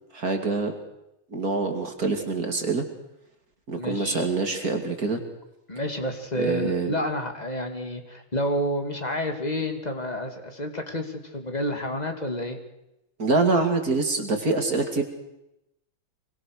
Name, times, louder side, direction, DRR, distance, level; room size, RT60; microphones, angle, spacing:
voice 1, 0.1-0.7 1.3-2.8 3.7-5.2 6.3-7.0 13.2-15.0, right 3 dB, 45° right, 5 dB, 2.9 m, -25 dB
voice 2, 3.7-4.3 5.7-12.6, equal, 20° left, 5 dB, 2.6 m, -29 dB
25.5 x 24.0 x 6.6 m, 0.87 s
omnidirectional pair, 2.3 m